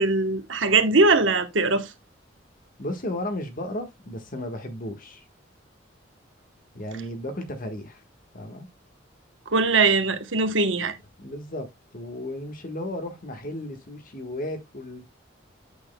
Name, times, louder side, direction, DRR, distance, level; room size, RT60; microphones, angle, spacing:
voice 1, 0.0-1.9 9.5-10.9, right 3 dB, 80° right, 1.1 m, -21 dB
voice 2, 2.8-5.2 6.7-8.0 8.3-8.7 11.2-11.7 11.9-15.1, left 1 dB, 45° left, 1.4 m, -34 dB
8.5 x 6.4 x 2.2 m
head